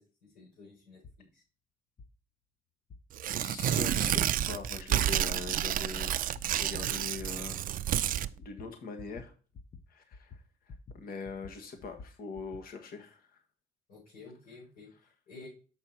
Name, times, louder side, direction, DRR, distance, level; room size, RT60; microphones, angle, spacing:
voice 1, 0.0-1.4 13.9-15.5, left 3 dB, 90° left, -8 dB, 4.6 m, -52 dB
sound 1, 1.0-1.2 2.0-2.1 2.9-3.0 3.7-3.8 4.7-4.8 5.5-5.6 6.4-6.5 7.2-7.3 8.0-8.1 8.4-8.7 9.0-9.3 9.5-9.8 10.1-11.0 11.3-12.7, left 4 dB, 45° left, 0.8 m, -49 dB
Tearing, 3.1-8.3, right 11 dB, 65° right, 0.4 m, -30 dB
voice 2, 3.3-6.1 6.5-7.6 8.4-9.3 9.9-13.4, left 4 dB, 75° left, 5 dB, 1.5 m, -42 dB
6.7 x 5.6 x 4.3 m, 0.36 s
cardioid pair, 75°, 15 cm